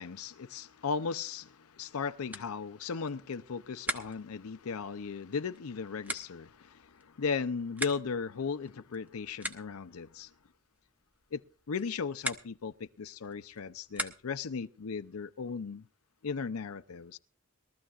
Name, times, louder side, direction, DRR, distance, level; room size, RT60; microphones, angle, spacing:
voice 1, 0.0-10.3 11.3-11.4 11.7-15.9 16.2-17.2, left 5 dB, 85° left, 0.6 m, -36 dB
sound 1, 1.9-14.6, right 1 dB, 10° right, 0.9 m, -44 dB
22.0 x 14.0 x 2.4 m
head